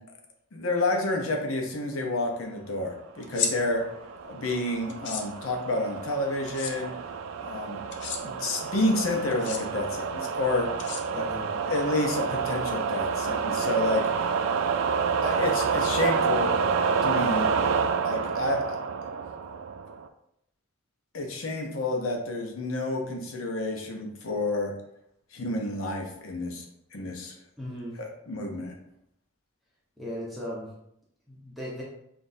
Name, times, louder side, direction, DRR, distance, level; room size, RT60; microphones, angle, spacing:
voice 1, 0.5-3.8 4.3-6.9 7.4-7.8 8.2-10.7 11.1-11.3 11.7-14.4 15.2-16.5 17.0-17.5 18.0-18.8 21.1-24.7 25.3-26.6 26.9-27.4 28.0-28.7, left 2 dB, 80° left, 2 dB, 0.8 m, -29 dB
sound 1, 3.2-3.5 4.9-5.2 6.5-6.7 7.9-8.2 9.3-9.6 10.8-11.4, left 6 dB, 55° left, 0.5 m, -32 dB
sound 2, 3.6-20.1, right 5 dB, 75° right, 0.3 m, -29 dB
voice 2, 11.1-11.5 27.6-28.0 30.0-30.7 31.3-31.8, equal, ahead, -6 dB, 0.7 m, -37 dB
5.9 x 2.5 x 2.6 m, 0.78 s
head